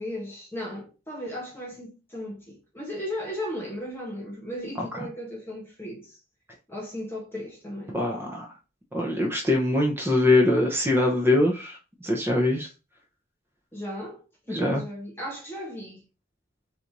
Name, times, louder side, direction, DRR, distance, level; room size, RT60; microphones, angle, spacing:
voice 1, 0.0-6.2 6.7-8.0 13.7-16.0, left 1 dB, 10° left, 1.3 m, -36 dB
voice 2, 7.9-8.5 8.9-12.7 14.5-14.8, left 2 dB, 10° right, 0.6 m, -23 dB
4.2 x 2.6 x 4.6 m
head